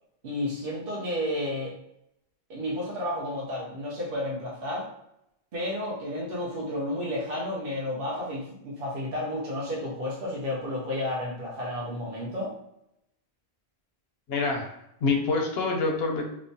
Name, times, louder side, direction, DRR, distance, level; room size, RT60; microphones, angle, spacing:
voice 1, 0.2-1.7 2.5-4.9 5.5-12.5, left 1 dB, 65° right, -5 dB, 0.8 m, -31 dB
voice 2, 14.3-14.7 15.0-16.2, left 3 dB, 75° left, 2 dB, 0.8 m, -26 dB
2.9 x 2.1 x 2.6 m, 0.79 s
omnidirectional pair, 1.1 m